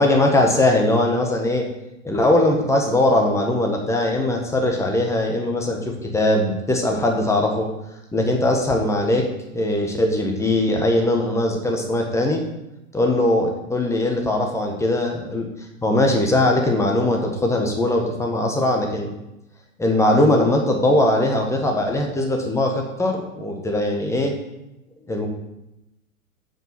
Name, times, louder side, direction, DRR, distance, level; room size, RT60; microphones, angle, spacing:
voice 1, 0.0-1.7 2.0-7.7 8.1-9.3 9.5-12.4 12.9-15.5 15.8-19.1 19.8-24.3 25.1-25.3, left 1 dB, 5° left, 1 dB, 1.5 m, -20 dB
7.6 x 5.3 x 6.1 m, 0.90 s
figure-of-eight pair, 100°, 41 cm